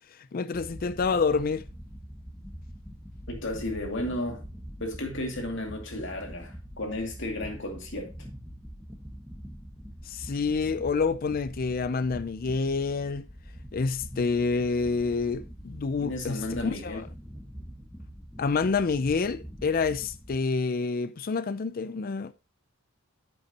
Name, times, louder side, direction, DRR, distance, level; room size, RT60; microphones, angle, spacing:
voice 1, 0.3-1.6 10.1-13.3 13.7-17.0 18.4-22.3, left 4 dB, 45° left, 0.4 m, -28 dB
sound 1, 0.5-20.4, equal, ahead, 1.2 m, -44 dB
voice 2, 3.3-4.4 4.8-8.1 16.0-17.0, left 1 dB, 60° left, 2.4 m, -33 dB
10.5 x 7.8 x 2.8 m
head